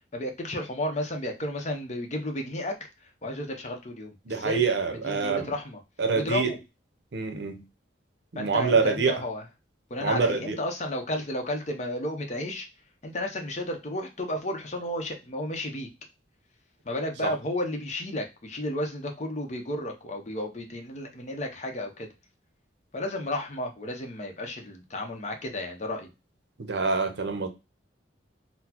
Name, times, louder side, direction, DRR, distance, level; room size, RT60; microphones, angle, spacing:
voice 1, 0.1-2.7 3.2-4.6 4.9-5.8 6.1-6.6 8.4-9.4 9.9-12.7 13.0-15.9 16.8-22.1 22.9-26.1, left 1 dB, 40° left, 0.6 m, -32 dB
voice 2, 4.3-5.5 6.0-6.5 7.1-7.6 8.3-9.2 10.0-10.6 17.2-17.3 26.6-27.5, right 4 dB, 65° right, 0.6 m, -26 dB
3.9 x 2.0 x 2.8 m
head